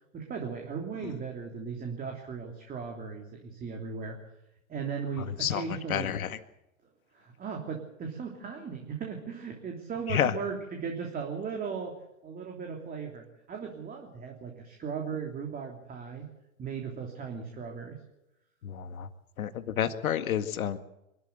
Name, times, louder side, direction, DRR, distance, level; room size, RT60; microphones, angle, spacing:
voice 1, 0.1-4.2 4.7-6.1 7.1-16.3 16.6-18.0, right 6 dB, 20° right, 2 dB, 3.2 m, -37 dB
voice 2, 5.2-6.4 10.1-10.3 18.6-19.1 19.4-20.8, left 9 dB, 75° left, 10 dB, 2.0 m, -30 dB
25.0 x 13.5 x 8.1 m, 0.87 s
hypercardioid pair, 130°, 42 cm